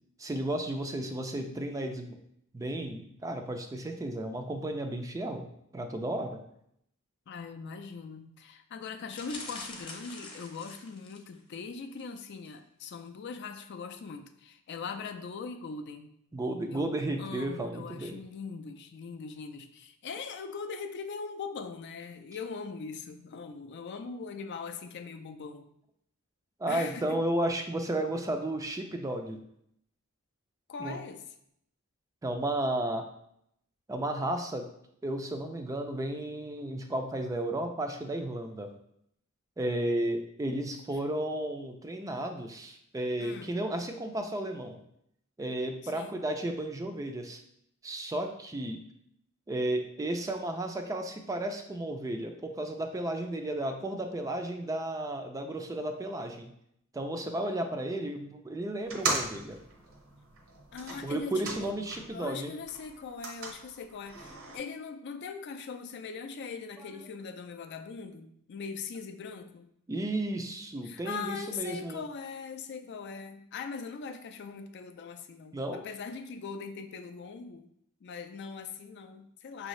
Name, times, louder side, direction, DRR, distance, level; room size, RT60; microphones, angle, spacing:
voice 1, 0.2-2.2 2.5-5.5 5.7-6.4 16.3-18.2 26.6-29.4 30.8-31.0 32.2-33.0 33.9-34.7 35.0-38.7 39.6-44.8 45.4-47.4 47.8-48.8 49.5-56.5 56.9-59.6 61.0-62.5 69.9-72.0 75.5-75.8, right 1 dB, 15° right, 5 dB, 0.3 m, -33 dB
voice 2, 7.3-16.1 16.7-25.7 26.7-27.2 30.7-31.2 43.2-43.6 45.8-46.2 60.7-61.7 62.1-69.7 70.8-77.7 78.0-79.7, left 5 dB, 55° left, 7 dB, 0.4 m, -41 dB
sound 1, 9.1-11.4 11.9-12.2 12.5-12.6, left 3 dB, 25° left, 0.8 m, -44 dB
sound 2, 58.8-62.2 62.6-64.6, right 3 dB, 65° right, 0.8 m, -38 dB
5.6 x 2.6 x 3.1 m, 0.73 s
head